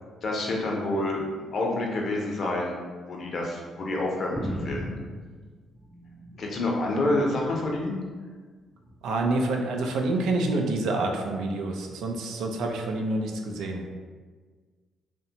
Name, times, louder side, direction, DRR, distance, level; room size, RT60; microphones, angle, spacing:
voice 1, 0.2-1.2 1.5-2.7 3.1-4.9 6.4-8.0, left 2 dB, 55° left, -1 dB, 0.6 m, -28 dB
sound 1, 4.4-6.6 7.0-7.9 8.8-9.1 10.1-10.3, equal, ahead, 0.3 m, -37 dB
voice 2, 9.0-13.8, right 2 dB, 85° right, 2 dB, 0.4 m, -27 dB
2.8 x 2.1 x 2.7 m, 1.5 s
cardioid pair, 90°, 0 cm